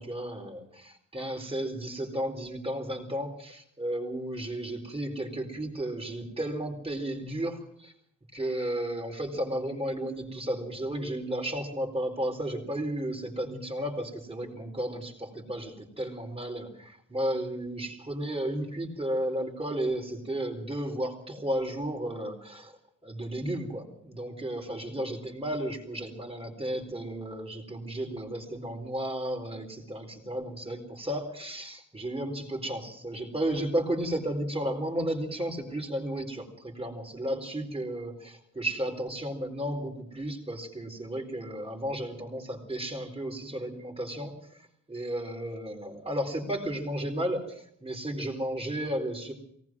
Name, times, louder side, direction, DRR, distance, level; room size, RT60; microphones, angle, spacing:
voice 1, 0.0-7.9 8.3-22.7 23.0-44.3 44.9-49.3, right 1 dB, 20° right, 3 dB, 4.1 m, -33 dB
23.0 x 18.5 x 6.1 m, 0.67 s
wide cardioid pair, 135°, 29 cm